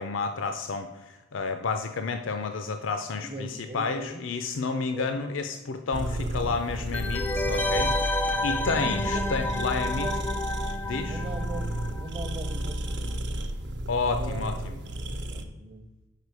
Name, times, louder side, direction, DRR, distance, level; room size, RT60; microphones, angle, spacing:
voice 1, 0.0-10.1 10.8-11.2 13.9-14.7, left 4 dB, 85° left, 7 dB, 0.5 m, -31 dB
voice 2, 3.2-4.2 4.7-5.2 8.8-9.2 9.7-10.2 11.0-13.3 14.0-15.9, right 1 dB, 30° right, 7 dB, 0.7 m, -40 dB
sound 1, 5.9-15.4, right 1 dB, 65° right, 0.7 m, -32 dB
sound 2, 6.9-12.4 12.7-12.8, left 2 dB, 10° left, 0.4 m, -30 dB
6.7 x 4.8 x 4.6 m, 1.1 s
head